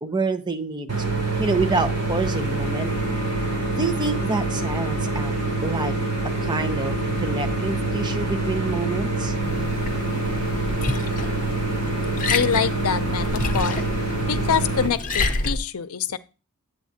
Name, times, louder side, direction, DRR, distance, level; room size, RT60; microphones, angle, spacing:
voice 1, 0.0-2.9 3.8-5.3 5.6-5.9 6.4-9.3, right 3 dB, 20° right, 7 dB, 0.7 m, -27 dB
sound 1, 0.9-14.9, right 2 dB, 75° right, 3.8 m, -25 dB
Liquid, 9.4-15.6, left 3 dB, 35° left, 0.8 m, -29 dB
voice 2, 12.3-13.8 14.3-16.2, left 7 dB, 80° left, 11 dB, 0.6 m, -25 dB
9.4 x 8.3 x 2.8 m, 0.31 s
head